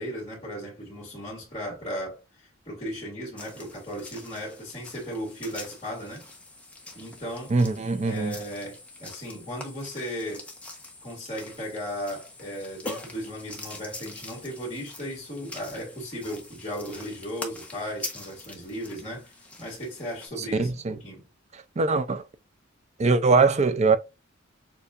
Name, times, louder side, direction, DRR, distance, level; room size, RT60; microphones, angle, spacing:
voice 1, 0.0-6.3 6.9-7.6 8.0-10.5 11.0-21.2, equal, 30° left, 2.2 m, -36 dB
sound 1, 3.4-20.3, left 2 dB, 5° left, 0.9 m, -43 dB
voice 2, 7.5-8.3 20.6-20.9 21.8-22.2 23.0-24.0, right 4 dB, 35° right, 0.4 m, -22 dB
6.8 x 2.4 x 2.5 m
head